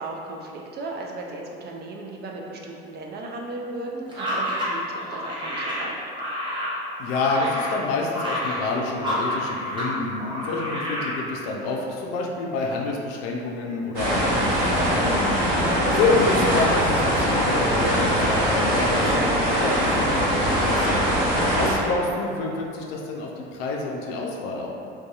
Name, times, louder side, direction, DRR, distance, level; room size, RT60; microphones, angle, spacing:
voice 1, 0.0-5.9 21.4-21.7, right 2 dB, 35° right, -1 dB, 0.4 m, -36 dB
sound 1, 4.1-9.9 10.2-11.2, left 1 dB, 15° right, 0.9 m, -29 dB
voice 2, 7.0-15.6 15.9-21.0 21.5-24.7, left 3 dB, 60° left, -1 dB, 0.5 m, -28 dB
sound 2, 13.9-21.7, equal, 75° right, 0.9 m, -22 dB
2.6 x 2.3 x 2.4 m, 2.6 s
hypercardioid pair, 65°, 29 cm